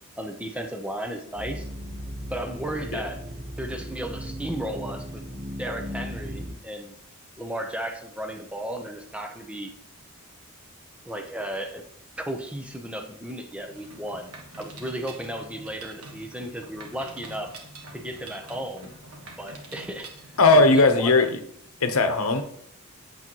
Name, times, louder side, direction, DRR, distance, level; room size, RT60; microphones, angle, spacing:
voice 1, 0.2-1.7 2.3-3.2 3.6-5.2 5.6-6.9 7.4-9.7 11.0-11.8 12.2-14.3 14.6-17.5 17.9-18.9 19.4-20.1 20.5-21.3, right 1 dB, 5° right, 4 dB, 0.8 m, -34 dB
sound 1, 1.4-6.5, equal, 35° right, 1.0 m, -36 dB
Mechanisms, 13.7-20.7, right 2 dB, 80° right, 1.5 m, -45 dB
voice 2, 20.4-21.4 21.8-22.4, left 3 dB, 70° left, 7 dB, 0.9 m, -18 dB
8.5 x 7.1 x 3.0 m, 0.68 s
head